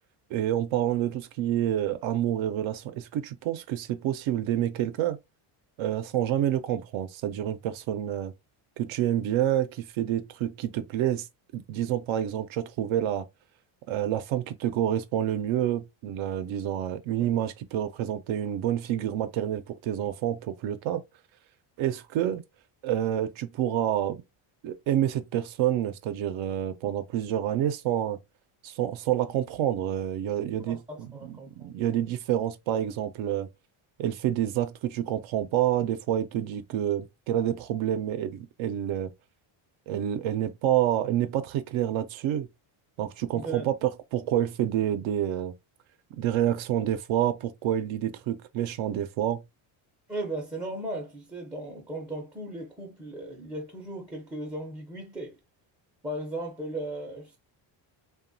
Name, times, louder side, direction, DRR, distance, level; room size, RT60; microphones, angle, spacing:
voice 1, 0.3-5.2 5.8-8.3 8.8-11.3 11.5-13.2 13.9-21.0 21.8-22.4 22.8-24.2 24.6-28.2 28.6-33.5 34.0-39.1 39.9-42.5 43.0-45.5 46.1-49.4, right 11 dB, 70° right, 0.6 m, -28 dB
voice 2, 30.7-31.7 43.3-43.7 50.1-55.3 56.0-57.4, right 1 dB, 10° right, 0.5 m, -36 dB
2.9 x 2.3 x 2.6 m
cardioid pair, 145°, 50 cm